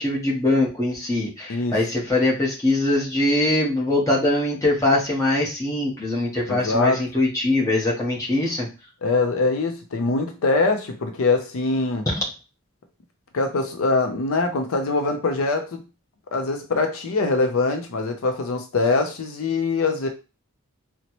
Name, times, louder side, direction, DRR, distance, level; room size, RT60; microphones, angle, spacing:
voice 1, 0.0-8.7 12.1-12.2, left 2 dB, 15° left, -4 dB, 0.9 m, -22 dB
voice 2, 6.5-7.0 9.0-12.1 13.3-15.8 16.3-20.1, left 3 dB, 70° left, 6 dB, 0.5 m, -23 dB
4.0 x 2.1 x 2.9 m, 0.31 s
head